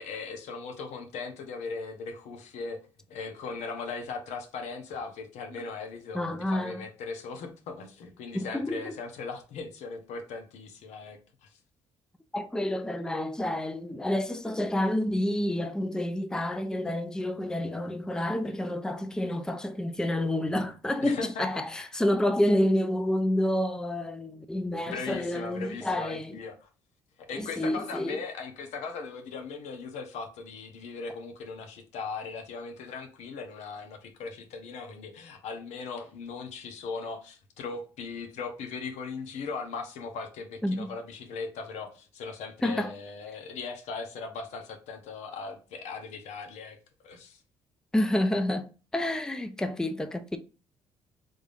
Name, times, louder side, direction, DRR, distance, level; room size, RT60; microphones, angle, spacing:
voice 1, 0.0-11.6 21.0-21.5 24.9-26.6 27.2-46.8 47.0-47.4, left 4 dB, 75° left, 0.9 m, -38 dB
voice 2, 6.1-6.8 8.3-8.9 12.3-26.4 27.3-28.2 40.6-40.9 42.6-42.9 47.9-50.4, left 1 dB, 5° left, 0.5 m, -29 dB
3.5 x 3.4 x 2.5 m
supercardioid pair, 65°, 12 cm